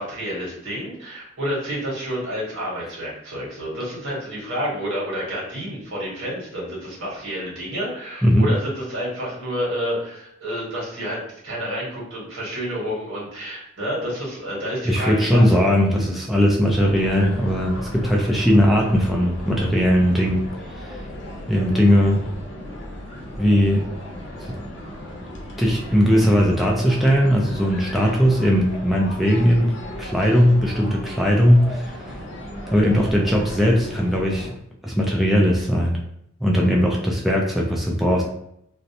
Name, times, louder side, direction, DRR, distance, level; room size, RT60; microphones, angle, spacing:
voice 1, 0.0-15.6, equal, 80° right, -5 dB, 1.3 m, -29 dB
voice 2, 14.8-20.4 20.8-21.0 21.5-22.2 23.4-23.9 25.6-29.7 30.0-32.0 32.7-34.5 34.8-36.0 36.4-38.2, equal, ahead, -3 dB, 0.3 m, -19 dB
sound 1, 16.6-34.5, equal, 65° left, 0.7 m, -36 dB
2.5 x 2.1 x 2.7 m, 0.74 s
head